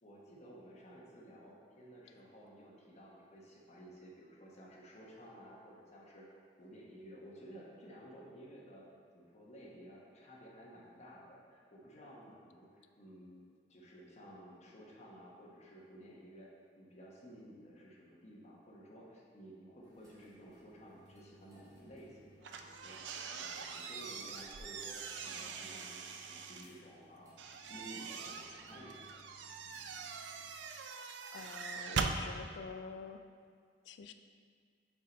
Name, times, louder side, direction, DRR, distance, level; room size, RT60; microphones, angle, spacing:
voice 1, 0.0-8.8 9.1-13.4 13.7-16.5 16.8-27.3 27.7-29.2, equal, 40° left, -4 dB, 1.0 m, -54 dB
sound 1, 19.8-30.5, equal, 20° right, 1.3 m, -64 dB
sound 2, 22.4-26.7 27.4-32.2, right 5 dB, 80° right, 0.4 m, -42 dB
voice 2, 31.3-33.2 33.9-34.1, left 5 dB, 75° left, 8 dB, 0.4 m, -47 dB
5.5 x 4.5 x 4.0 m, 2.1 s
head